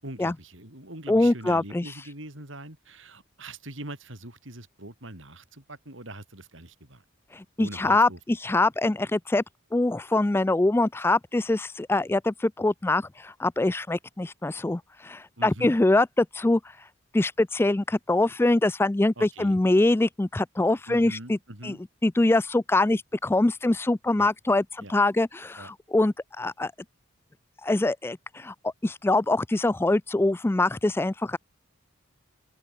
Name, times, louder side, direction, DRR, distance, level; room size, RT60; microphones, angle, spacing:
voice 1, 0.0-7.0 7.6-8.2 15.4-15.7 19.2-19.6 20.9-21.8 24.2-24.3 24.8-24.9 25.6-25.7, right 1 dB, 70° right, 5.3 m, -42 dB
voice 2, 1.1-1.8 7.3-9.4 9.7-16.6 17.1-21.4 21.6-21.8 22.0-24.6 24.9-26.7 27.6-31.4, left 2 dB, 10° left, 0.3 m, -24 dB
open air
head